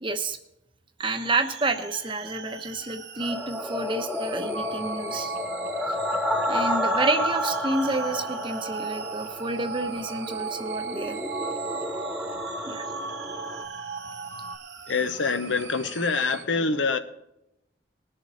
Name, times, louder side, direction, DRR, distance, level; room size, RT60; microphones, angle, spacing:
voice 1, 0.0-0.4 1.0-5.3 6.5-11.2 12.7-12.9, right 2 dB, 25° right, 1.0 m, -29 dB
sound 1, 1.0-16.4, right 6 dB, 75° right, 2.6 m, -44 dB
sound 2, 3.2-13.6, left 1 dB, ahead, 0.5 m, -31 dB
sound 3, 4.5-14.6, right 4 dB, 50° right, 0.9 m, -35 dB
voice 2, 14.9-17.0, left 4 dB, 85° left, 1.0 m, -25 dB
20.5 x 7.1 x 4.1 m
head